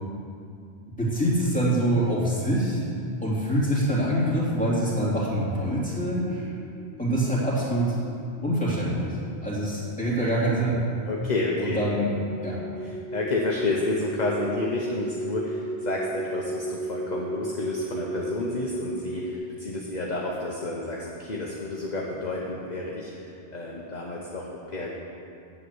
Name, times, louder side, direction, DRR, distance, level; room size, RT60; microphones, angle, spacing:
voice 1, 1.0-2.8 3.2-6.6 7.0-8.0 8.4-10.8 11.6-12.1 12.4-12.6, right 1 dB, 5° left, -8 dB, 2.8 m, -25 dB
sound 1, 6.2-19.3, right 2 dB, 85° left, 1.0 m, -36 dB
voice 2, 11.0-11.8 13.1-24.9, left 2 dB, 40° left, -2 dB, 1.1 m, -30 dB
8.2 x 7.4 x 8.1 m, 2.5 s
omnidirectional pair, 1.2 m